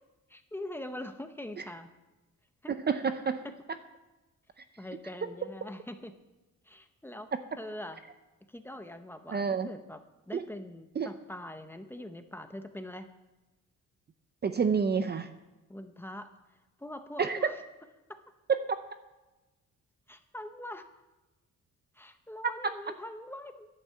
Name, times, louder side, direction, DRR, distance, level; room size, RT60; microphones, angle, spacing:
voice 1, 0.3-1.9 2.6-2.8 3.4-3.5 4.8-6.1 6.6-7.3 7.6-8.0 8.5-10.0 10.3-13.1 15.7-16.3 16.8-17.6 18.1-18.2 20.1-20.9 21.9-23.7, left 1 dB, 5° left, 7 dB, 0.8 m, -43 dB
voice 2, 2.7-3.4 9.3-9.7 10.3-10.4 11.0-11.1 14.4-15.3 17.2-17.5 18.5-18.7 22.6-22.7, right 6 dB, 30° right, 10 dB, 0.6 m, -28 dB
11.0 x 8.6 x 7.6 m, 1.1 s
cardioid pair, 140°, 32 cm